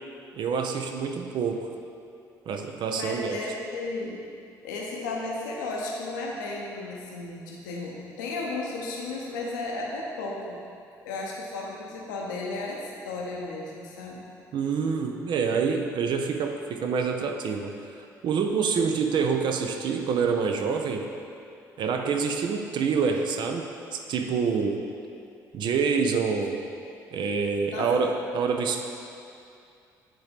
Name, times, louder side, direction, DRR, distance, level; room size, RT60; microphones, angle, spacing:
voice 1, 0.3-1.7 2.5-3.5 14.5-17.7 18.2-21.1 21.8-24.8 25.5-26.6 27.1-28.8, right 5 dB, 50° right, 4 dB, 0.5 m, -26 dB
voice 2, 2.9-4.2 4.6-10.6 11.0-14.3 27.7-28.0, left 2 dB, 70° left, -2 dB, 0.8 m, -34 dB
9.0 x 3.7 x 3.4 m, 2.5 s
figure-of-eight pair, 45°, 10 cm